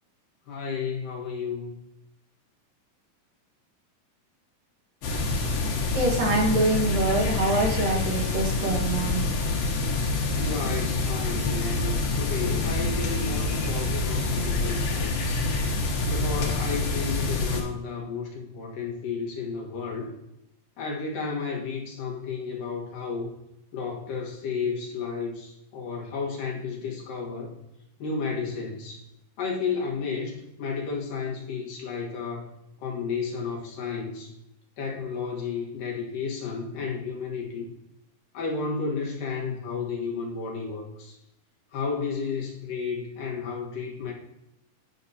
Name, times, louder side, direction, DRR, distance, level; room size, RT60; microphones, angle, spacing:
voice 1, 0.5-1.8 10.4-15.5 16.1-20.1 20.8-23.3 23.7-27.5 28.0-29.0 29.4-32.4 32.8-34.3 34.8-37.7 38.3-41.2 41.7-44.1, left 5 dB, 75° left, -2 dB, 3.2 m, -32 dB
sound 1, 5.0-17.6, left 3 dB, 90° left, 3.3 m, -27 dB
voice 2, 5.9-9.2, right 2 dB, 75° right, -1 dB, 3.2 m, -25 dB
10.5 x 6.2 x 2.8 m, 0.85 s
omnidirectional pair, 4.0 m